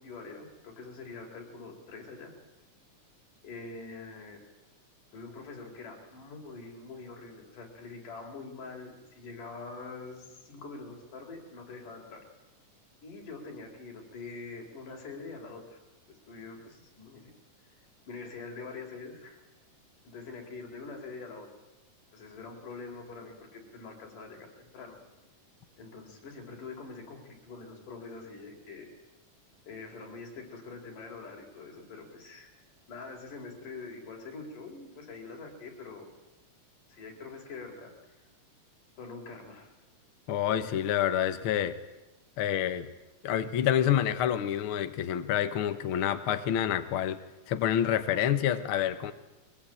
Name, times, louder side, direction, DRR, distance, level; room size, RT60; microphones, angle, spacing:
voice 1, 0.0-2.3 3.4-4.4 5.1-12.2 13.0-15.8 16.1-17.3 18.1-19.4 20.0-21.5 22.1-25.0 25.8-28.9 29.7-32.5 32.9-36.1 36.9-37.9 39.0-39.7, left 4 dB, 75° left, 2 dB, 5.6 m, -44 dB
voice 2, 40.3-41.8 42.4-42.9 43.2-49.1, left 10 dB, 60° left, 10 dB, 1.5 m, -28 dB
22.5 x 20.5 x 8.8 m, 1.0 s
omnidirectional pair, 3.7 m